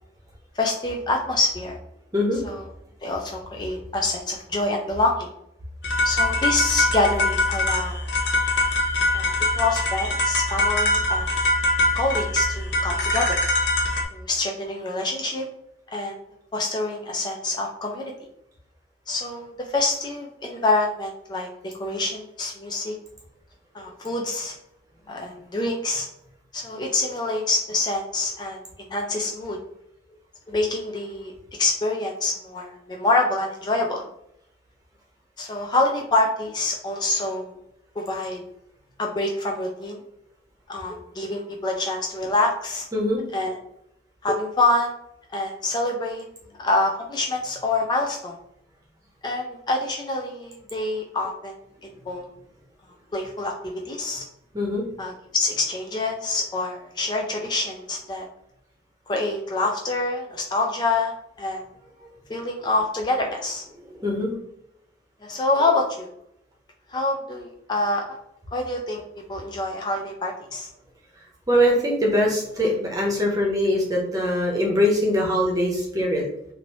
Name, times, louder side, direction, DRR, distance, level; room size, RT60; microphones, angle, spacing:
voice 1, 0.5-1.8 2.4-2.7 3.0-5.3 6.0-8.1 9.1-11.3 11.9-13.4 14.1-15.5 15.9-16.2 16.5-18.1 19.1-22.9 23.7-24.6 25.1-26.1 26.5-28.6 28.9-29.6 30.5-34.1 35.4-37.6 38.0-38.4 39.0-40.0 40.7-42.9 43.3-43.6 44.2-44.9 45.3-46.3 46.6-48.3 49.2-51.6 51.8-52.3 53.1-54.2 55.0-58.3 59.1-61.6 62.3-63.6 65.2-66.1 66.9-68.2 68.5-69.0 69.3-70.7, left 2 dB, 25° left, 1 dB, 0.3 m, -26 dB
sound 1, 5.8-14.0, left 1 dB, 80° left, 0.7 m, -23 dB
voice 2, 54.5-54.8 62.0-62.1 63.8-64.3 71.5-76.2, left 1 dB, 20° right, -2 dB, 0.8 m, -22 dB
3.1 x 2.6 x 3.0 m, 0.78 s
head